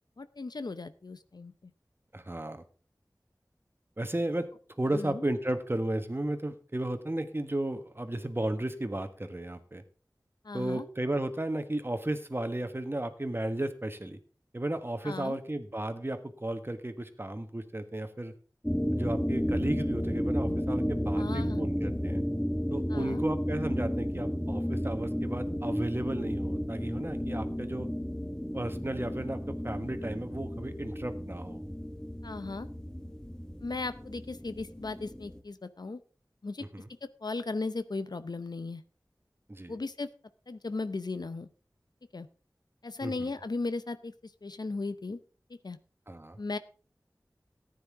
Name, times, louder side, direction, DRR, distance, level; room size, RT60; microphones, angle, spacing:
voice 1, 0.2-1.5 4.9-5.2 10.4-10.8 15.0-15.4 21.2-21.6 22.9-23.2 32.2-32.7 33.6-36.0 36.4-36.7 37.0-38.8 39.7-40.1 40.5-41.5 42.1-42.3 42.8-44.1 44.4-45.2 45.5-45.8 46.4-46.6, left 3 dB, 70° left, 12 dB, 0.7 m, -36 dB
voice 2, 2.1-2.6 4.0-4.5 4.8-9.8 10.5-14.2 14.5-18.3 18.9-22.2 22.7-27.9 28.5-31.6 36.6-36.9 39.5-39.8 43.0-43.3 46.1-46.4, right 1 dB, 30° right, 8 dB, 1.4 m, -34 dB
sound 1, 18.6-35.4, equal, 10° left, 1.2 m, -33 dB
14.0 x 9.5 x 3.6 m, 0.39 s
wide cardioid pair, 45°, 7 cm